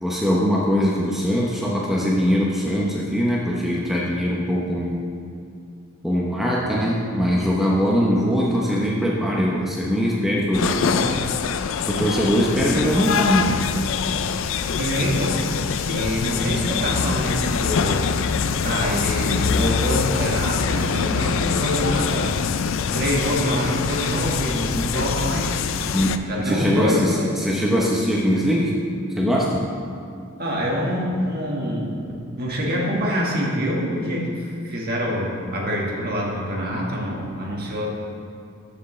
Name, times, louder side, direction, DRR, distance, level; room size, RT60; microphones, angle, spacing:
voice 1, 0.0-5.0 6.0-11.1 11.9-13.6 25.9-28.7 29.2-29.6, equal, ahead, -4 dB, 0.7 m, -21 dB
sound 1, 10.5-26.2, left 6 dB, 60° left, 0.4 m, -24 dB
voice 2, 14.8-15.5 15.8-18.1 18.6-22.4 22.9-25.6 26.3-27.3 30.4-32.0 32.4-37.9, equal, 45° right, -2 dB, 1.6 m, -25 dB
14.0 x 6.7 x 3.2 m, 2.5 s
head